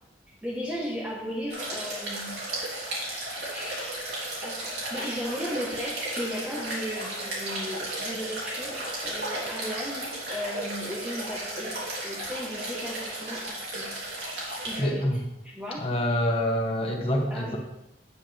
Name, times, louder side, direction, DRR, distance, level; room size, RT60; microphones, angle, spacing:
voice 1, 0.4-2.4 3.0-3.1 3.4-4.0 4.4-11.7 12.0-13.9 14.3-15.1 15.5-16.1 17.3-17.6, equal, 5° right, -5 dB, 1.4 m, -36 dB
sound 1, 1.5-14.8, right 1 dB, 65° right, 3.4 m, -34 dB
voice 2, 14.8-15.2 15.8-17.6, equal, 30° left, 1 dB, 1.6 m, -26 dB
9.6 x 8.6 x 3.5 m, 0.90 s
head